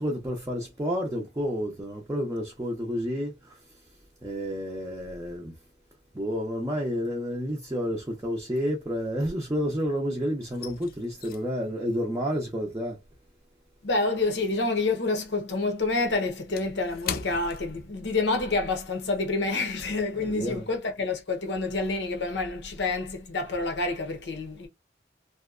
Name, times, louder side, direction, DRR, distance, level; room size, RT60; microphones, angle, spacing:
voice 1, 0.0-3.6 4.2-5.5 6.1-13.0 20.3-20.6, equal, 15° right, 0.5 m, -30 dB
sound 1, 7.2-7.6 7.9-9.9 10.1-14.8 15.1-18.4 18.7-18.9 19.4-19.6, left 7 dB, 55° left, 0.4 m, -42 dB
voice 2, 13.8-24.7, left 3 dB, 80° left, 0.7 m, -28 dB
2.7 x 2.2 x 2.3 m
head